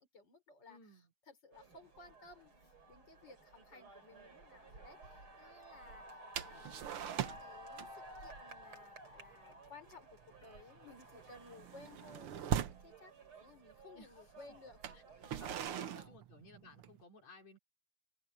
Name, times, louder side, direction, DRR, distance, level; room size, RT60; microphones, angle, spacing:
voice 1, 0.0-13.1 13.4-14.9 15.5-16.2, left 3 dB, 35° left, 5.4 m, -59 dB
voice 2, 0.7-1.1 5.8-6.0 6.4-6.9 13.9-14.3 14.9-15.0 15.4-17.6, left 2 dB, 60° left, 4.6 m, -59 dB
sound 1, 1.5-15.7, right 1 dB, 40° right, 5.0 m, -55 dB
sound 2, 6.4-7.5 7.8-8.1 8.4-8.6 9.0-9.3 9.6-9.9 10.2-12.9 13.7-13.8 14.7-17.0, right 9 dB, 60° right, 1.6 m, -41 dB
omnidirectional pair, 3.5 m